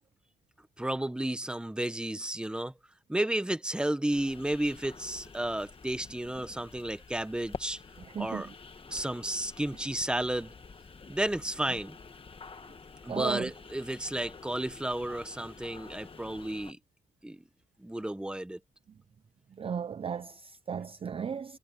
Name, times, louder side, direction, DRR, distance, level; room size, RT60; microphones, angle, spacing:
voice 1, 0.8-2.7 3.1-7.8 8.2-8.5 8.9-10.5 11.1-12.0 13.0-16.8 17.2-17.4 17.8-18.6, right 1 dB, 5° right, 0.8 m, -32 dB
sound 1, 4.1-16.7, left 4 dB, 25° left, 1.3 m, -49 dB
voice 2, 8.0-8.5 13.1-13.5 19.5-21.6, right 7 dB, 30° right, 0.4 m, -36 dB
wide cardioid pair, 170°, 20 cm